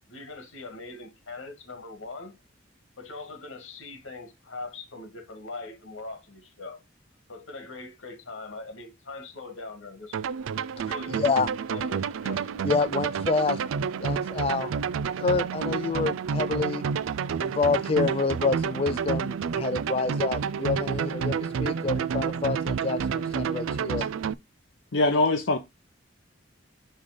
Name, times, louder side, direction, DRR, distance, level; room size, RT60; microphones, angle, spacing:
voice 1, 0.1-2.4 3.0-6.8 7.3-10.3 10.8-11.3 11.7-12.5, left 3 dB, 90° left, 1.8 m, -41 dB
sound 1, 10.1-24.3, right 6 dB, 85° right, 0.4 m, -29 dB
voice 2, 11.1-11.5 12.6-13.6 14.0-14.7 15.2-16.8 17.4-24.1, left 4 dB, 30° left, 0.3 m, -27 dB
voice 3, 24.9-25.6, left 2 dB, 70° left, 0.7 m, -22 dB
5.6 x 3.3 x 5.0 m
head